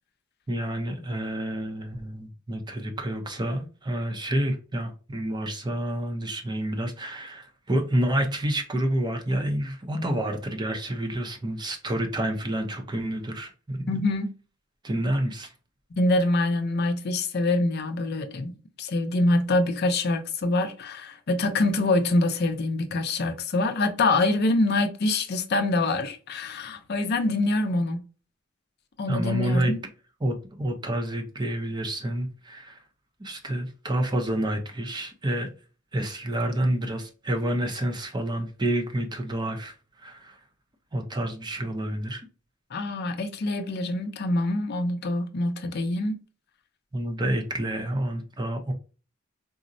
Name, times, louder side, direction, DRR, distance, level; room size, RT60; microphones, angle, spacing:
voice 1, 0.5-13.9 14.8-15.5 29.1-29.7 30.2-32.8 33.2-35.5 35.9-40.4 40.9-42.3 46.9-48.7, right 1 dB, 20° right, 0.5 m, -29 dB
voice 2, 13.9-14.3 16.0-28.0 29.0-29.8 42.7-46.2, left 2 dB, 55° left, 0.5 m, -25 dB
3.7 x 2.0 x 2.6 m
head